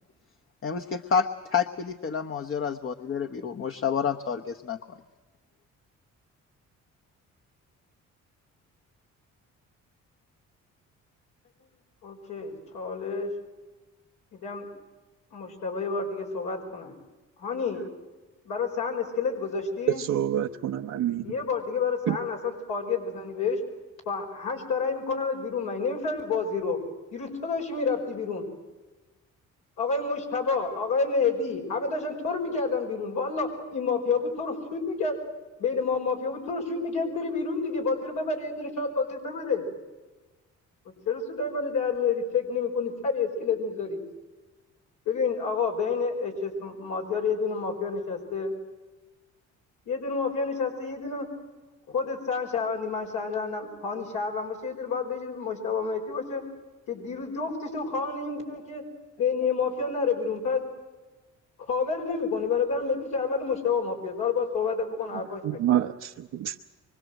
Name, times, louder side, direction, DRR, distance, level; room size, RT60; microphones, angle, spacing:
voice 1, 0.6-5.0, left 6 dB, 45° left, 6 dB, 1.1 m, -29 dB
voice 2, 12.0-13.3 14.3-14.7 15.3-16.9 17.4-17.8 18.4-20.0 21.2-23.6 24.1-26.8 27.1-28.4 29.8-35.2 35.6-39.6 41.0-44.0 45.0-48.5 49.8-51.3 51.9-56.4 56.9-58.8 59.2-60.6 61.7-65.6, left 4 dB, 85° left, 0 dB, 5.1 m, -29 dB
voice 3, 19.9-21.2 22.1-22.2 65.4-66.6, right 11 dB, 80° right, 1 dB, 0.9 m, -27 dB
24.5 x 24.5 x 7.8 m, 1.2 s
cardioid pair, 90°, 30 cm